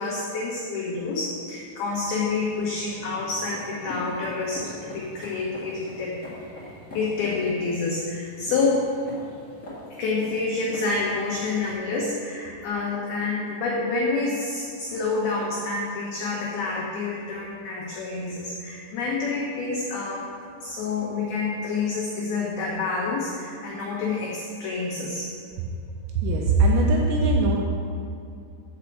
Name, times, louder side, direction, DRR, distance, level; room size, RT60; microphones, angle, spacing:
voice 1, 0.0-6.2 6.5-8.9 10.0-20.3 20.6-25.3, left 3 dB, 85° left, -3 dB, 2.2 m, -28 dB
sound 1, 1.9-11.7, left 1 dB, 50° left, 0.9 m, -43 dB
voice 2, 26.2-27.6, right 2 dB, 80° right, -1 dB, 2.7 m, -20 dB
6.3 x 6.0 x 7.0 m, 2.6 s
omnidirectional pair, 5.5 m